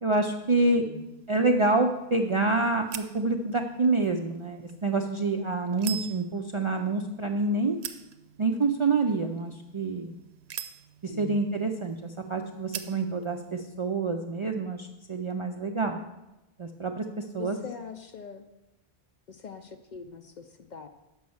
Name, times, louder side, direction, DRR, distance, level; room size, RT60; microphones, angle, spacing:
voice 1, 0.0-0.8 1.3-7.8 8.4-10.1 11.0-16.0 16.6-17.6, right 3 dB, 50° right, 3 dB, 0.4 m, -27 dB
voice 2, 0.7-1.1 11.0-11.4 17.4-18.4 19.3-20.9, left 6 dB, 55° left, 7 dB, 0.5 m, -42 dB
sound 1, 0.9-13.6, right 9 dB, 85° right, 0.9 m, -45 dB
6.2 x 5.2 x 7.0 m, 0.98 s
omnidirectional pair, 1.1 m